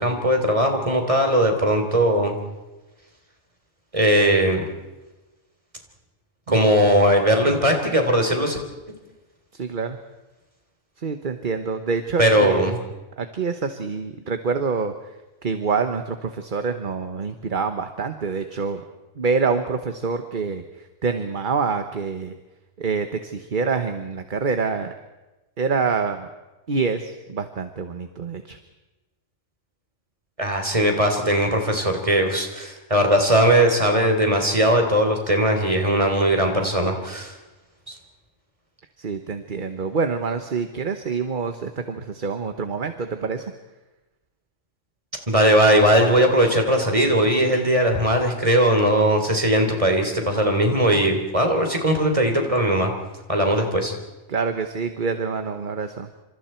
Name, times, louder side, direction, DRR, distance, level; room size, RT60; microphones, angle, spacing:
voice 1, 0.0-2.3 3.9-4.6 6.5-8.6 12.2-12.8 30.4-37.3 37.9-38.0 45.3-52.9 53.3-53.9, right 1 dB, 25° right, 4 dB, 3.4 m, -19 dB
voice 2, 9.5-10.0 11.0-12.8 13.2-14.9 15.4-18.8 19.2-20.6 21.0-22.3 22.8-24.9 25.6-26.3 26.7-28.6 39.0-43.4 54.3-56.1, right 5 dB, 40° right, 8 dB, 1.2 m, -26 dB
28.0 x 26.5 x 4.5 m, 1.1 s
omnidirectional pair, 1.3 m